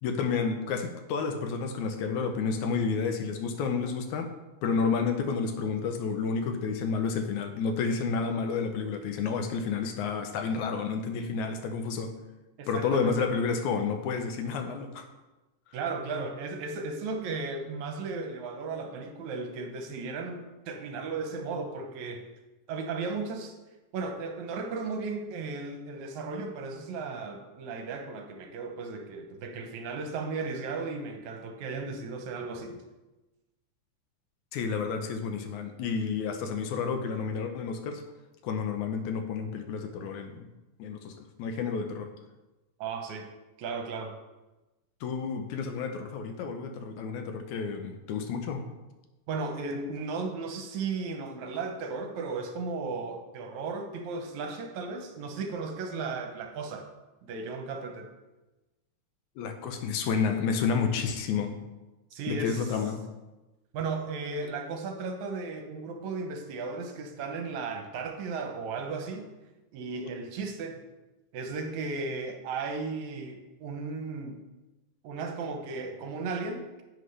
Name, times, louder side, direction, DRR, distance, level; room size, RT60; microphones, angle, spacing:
voice 1, 0.0-4.3 4.6-12.1 12.7-15.1 34.5-38.0 38.4-40.5 40.8-42.1 45.0-48.7 59.4-61.6 62.3-63.0, left 5 dB, 80° left, 6 dB, 2.1 m, -30 dB
voice 2, 12.6-13.3 15.7-22.3 22.7-23.6 23.9-32.8 42.8-43.3 43.6-44.2 49.3-56.9 57.2-58.1 62.1-62.7 63.7-69.3 69.7-70.8 71.3-74.4 75.0-76.8, right 4 dB, 75° right, 4 dB, 2.0 m, -35 dB
10.5 x 7.9 x 3.3 m, 1.1 s
omnidirectional pair, 3.6 m